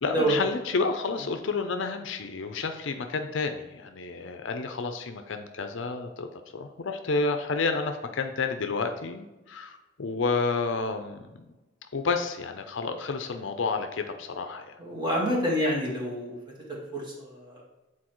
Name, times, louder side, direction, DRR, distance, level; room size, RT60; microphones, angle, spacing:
voice 1, 0.0-6.3 6.5-11.5 11.9-14.7, left 4 dB, 60° left, 7 dB, 0.5 m, -30 dB
voice 2, 14.8-16.4 16.7-17.6, equal, 20° right, -3 dB, 1.6 m, -28 dB
8.5 x 4.1 x 3.0 m, 1.1 s
head